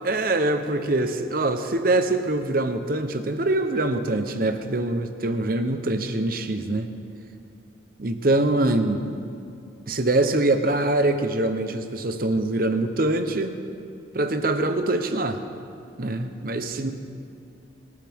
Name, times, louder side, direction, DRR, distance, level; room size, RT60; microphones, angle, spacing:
voice 1, 0.0-6.9 8.0-9.1 9.9-13.5 14.1-15.4 16.0-16.9, right 2 dB, 50° right, 8 dB, 0.9 m, -24 dB
24.0 x 13.5 x 3.6 m, 2.5 s
head